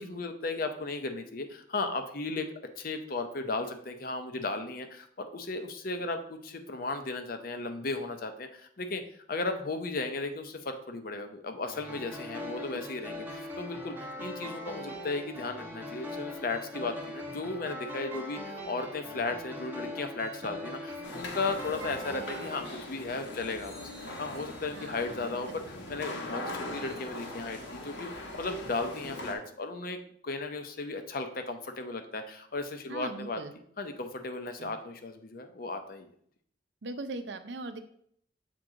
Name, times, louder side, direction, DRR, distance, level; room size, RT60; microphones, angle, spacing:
voice 1, 0.0-2.5 2.8-9.0 9.3-33.4 33.8-36.1, left 3 dB, 55° left, 7 dB, 0.7 m, -35 dB
sound 1, 11.7-22.7, left 1 dB, 10° right, 1.0 m, -41 dB
sound 2, 21.0-29.3, left 1 dB, 80° left, 1.2 m, -41 dB
voice 2, 32.9-33.5 34.6-34.8 36.8-37.8, right 2 dB, 80° right, 9 dB, 0.6 m, -40 dB
7.7 x 3.7 x 3.9 m, 0.64 s
head